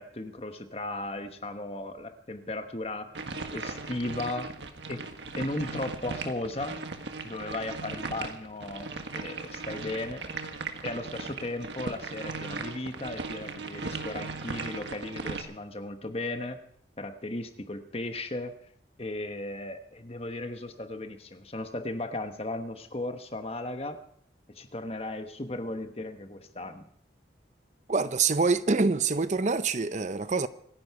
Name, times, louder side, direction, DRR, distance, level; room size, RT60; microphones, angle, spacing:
voice 1, 0.0-3.2 3.5-4.5 4.9-6.8 7.2-10.2 10.8-16.6 17.0-18.5 19.0-24.0 24.5-26.8, left 2 dB, 35° left, 1.2 m, -36 dB
sound 1, 3.1-15.4, right 3 dB, 80° right, 1.6 m, -38 dB
voice 2, 27.9-30.5, right 4 dB, 40° right, 0.6 m, -25 dB
26.5 x 10.5 x 4.7 m
head